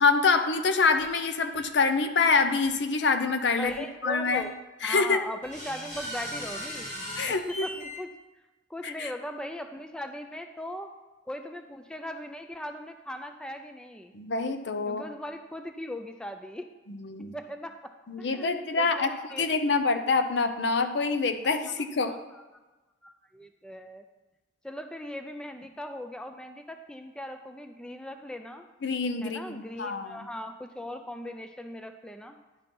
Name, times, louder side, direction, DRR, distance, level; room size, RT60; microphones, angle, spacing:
voice 1, 0.0-3.7 4.0-4.4 4.8-5.2 7.2-7.7 8.8-9.1 14.1-15.0 16.9-17.3 18.1-22.1 28.8-30.3, left 4 dB, 65° left, 8 dB, 0.6 m, -26 dB
sound 1, 1.0-1.1 1.5-1.7 2.6-2.7 3.7-3.8 4.3-4.4 5.4-8.0, equal, 45° left, 1.8 m, -38 dB
voice 2, 3.6-4.6 4.8-6.9 7.3-8.1 8.7-10.9 11.3-14.1 14.9-16.7 17.3-19.4 22.1-22.4 23.0-24.0 24.6-28.6 29.2-32.4, left 1 dB, 5° left, 6 dB, 0.4 m, -39 dB
10.5 x 4.2 x 5.3 m, 1.1 s
head